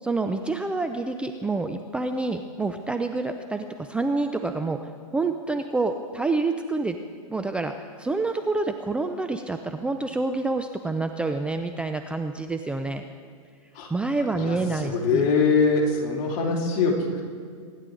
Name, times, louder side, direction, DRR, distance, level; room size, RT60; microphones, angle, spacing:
voice 1, 0.0-4.8 5.1-7.0 7.3-13.0 13.9-15.2, right 3 dB, 5° right, 6 dB, 0.5 m, -27 dB
voice 2, 14.3-17.3, left 4 dB, 45° left, -1 dB, 3.1 m, -23 dB
24.5 x 10.5 x 3.8 m, 2.1 s
hypercardioid pair, 125°, 18 cm